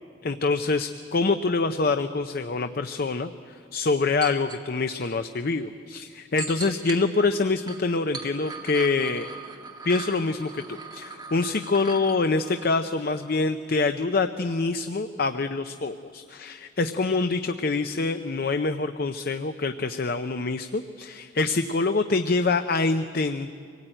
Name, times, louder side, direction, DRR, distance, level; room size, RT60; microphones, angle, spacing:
voice 1, 0.2-9.3 9.8-23.5, left 3 dB, 50° left, 8 dB, 0.6 m, -25 dB
sound 1, 4.2-4.6 5.0-5.1 6.4-7.0 7.5-13.5 13.7-13.8, right 4 dB, 20° right, 1.9 m, -40 dB
25.0 x 18.0 x 8.9 m, 2.4 s
head